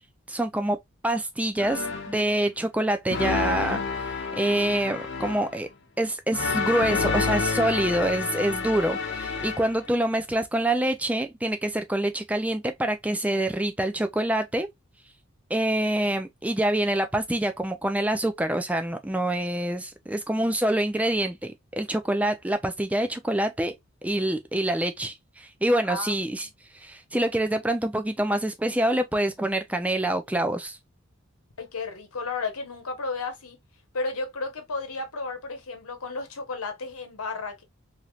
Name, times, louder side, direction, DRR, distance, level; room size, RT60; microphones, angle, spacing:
voice 1, 0.3-0.8 1.0-5.7 6.0-14.7 15.5-23.7 24.0-26.5 26.7-30.8, right 1 dB, 5° right, 0.3 m, -26 dB
sound 1, 1.6-2.3 3.1-5.6 6.3-9.9, left 4 dB, 50° left, 0.7 m, -29 dB
voice 2, 25.8-26.2 31.6-33.6 33.9-37.6, left 3 dB, 85° left, 1.0 m, -33 dB
3.1 x 2.7 x 2.3 m
head